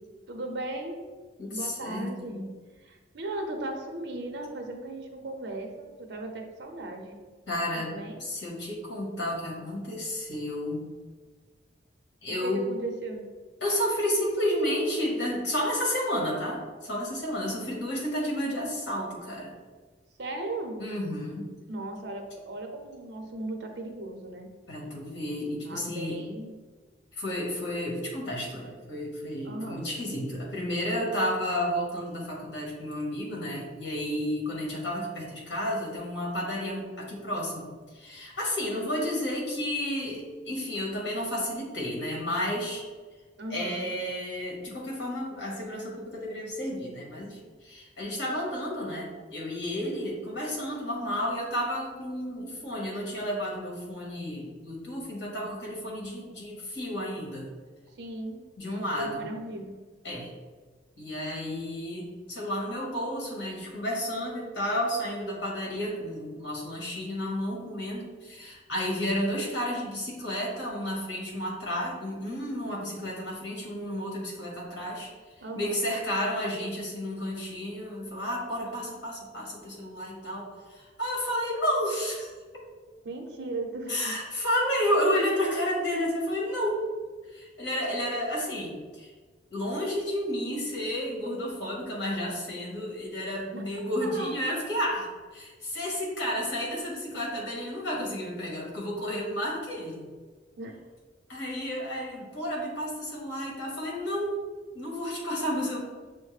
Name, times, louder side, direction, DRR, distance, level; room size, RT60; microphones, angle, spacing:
voice 1, 0.3-1.0 1.5-2.5 2.8-7.1 7.7-8.2 12.3-13.2 20.2-20.8 21.7-24.5 25.6-26.6 29.4-29.9 43.4-43.9 58.0-59.7 75.4-75.9 83.0-84.2 93.5-93.7 94.0-94.3 100.6-100.7, right 2 dB, 70° right, 3 dB, 0.6 m, -37 dB
voice 2, 1.4-2.4 7.5-7.9 8.2-10.8 12.2-12.6 13.6-19.6 20.8-21.5 24.7-26.2 27.1-37.7 37.9-42.8 43.5-57.5 58.6-59.3 60.0-60.3 61.0-75.1 75.5-82.3 83.9-86.8 87.3-89.1 89.5-100.0 101.3-104.3 104.7-105.8, equal, 70° left, -3 dB, 1.3 m, -31 dB
6.3 x 2.1 x 3.2 m, 1.4 s
head